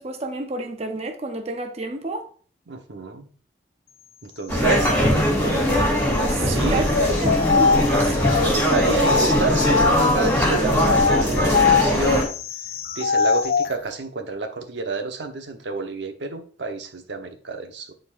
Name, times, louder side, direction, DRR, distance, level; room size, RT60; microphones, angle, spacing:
voice 1, 0.0-2.3 4.7-5.0 5.3-8.2, right 2 dB, 35° right, 0.8 m, -30 dB
voice 2, 2.7-3.3 4.2-4.9 6.4-7.2 8.4-12.3 13.0-17.9, right 3 dB, 85° right, 1.0 m, -29 dB
sound 1, 4.5-12.2, equal, 10° left, 2.8 m, -20 dB
sound 2, 6.9-10.3 10.8-13.7, left 5 dB, 55° left, 0.4 m, -22 dB
10.5 x 4.4 x 2.5 m
head